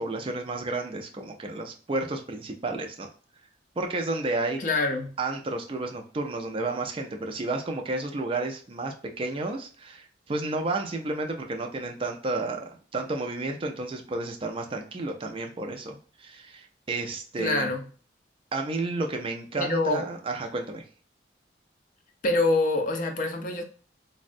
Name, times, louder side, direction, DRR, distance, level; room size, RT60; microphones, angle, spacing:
voice 1, 0.0-3.1 3.8-4.6 5.2-17.7 18.5-20.8, right 2 dB, 30° right, 3 dB, 0.4 m, -31 dB
voice 2, 4.6-5.1 17.4-17.9 19.6-20.1 22.2-23.6, left 2 dB, 45° left, 4 dB, 0.5 m, -25 dB
3.4 x 2.1 x 2.5 m, 0.41 s
head